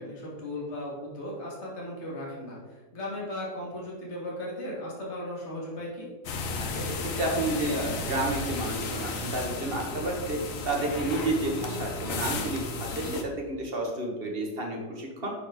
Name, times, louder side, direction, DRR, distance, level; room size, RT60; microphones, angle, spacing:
voice 1, 0.0-6.1, left 1 dB, 40° left, -4 dB, 2.1 m, -37 dB
sound 1, 6.2-13.2, left 3 dB, 60° left, 1.1 m, -34 dB
voice 2, 6.7-10.4 10.6-15.3, right 2 dB, 35° right, 0 dB, 1.5 m, -31 dB
11.0 x 4.2 x 3.6 m, 1.3 s
omnidirectional pair, 1.7 m